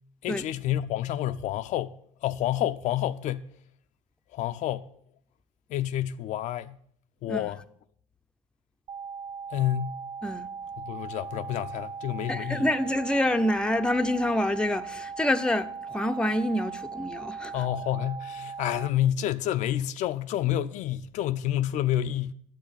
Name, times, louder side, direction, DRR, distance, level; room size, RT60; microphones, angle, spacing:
voice 1, 0.2-1.9 2.2-3.5 4.3-4.9 5.7-6.8 7.2-7.6 9.5-10.0 10.8-12.7 17.5-22.3, left 12 dB, 65° left, 0.5 m, -29 dB
sound 1, 8.9-18.9, right 6 dB, 60° right, 0.5 m, -39 dB
voice 2, 12.3-17.5, left 1 dB, 5° left, 0.7 m, -27 dB
9.3 x 7.5 x 8.6 m
supercardioid pair, 75°, 14 cm